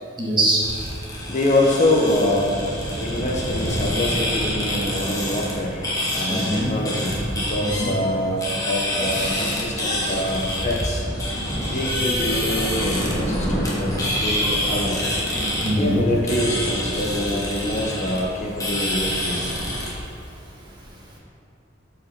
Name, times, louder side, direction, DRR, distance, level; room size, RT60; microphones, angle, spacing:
voice 1, 0.2-0.6 6.3-6.7 7.6-7.9 15.6-16.0, right 1 dB, 25° right, -4 dB, 1.6 m, -22 dB
sound 1, 0.6-19.9, left 1 dB, 20° left, 1.6 m, -27 dB
voice 2, 1.3-2.6 3.0-5.9 6.1-11.1 11.7-15.0 15.7-19.4, left 1 dB, 40° left, -1 dB, 0.9 m, -25 dB
8.1 x 5.1 x 5.8 m, 2.5 s
head